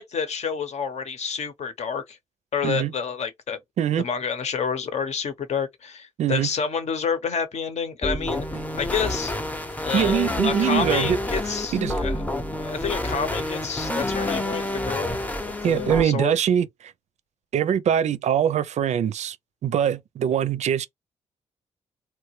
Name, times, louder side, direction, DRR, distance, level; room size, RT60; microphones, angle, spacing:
voice 1, 0.0-2.2 2.5-3.6 4.0-8.5 8.7-9.3 9.8-12.1 12.5-15.2 15.4-16.3, left 6 dB, 60° left, 0.9 m, -29 dB
voice 2, 6.2-6.5 9.9-11.2 11.7-12.0 15.6-16.9 17.5-19.4 19.6-20.9, right 9 dB, 65° right, 0.4 m, -23 dB
sound 1, 8.0-16.0, left 1 dB, 10° left, 0.6 m, -28 dB
2.9 x 2.1 x 3.1 m
supercardioid pair, 60°, 13 cm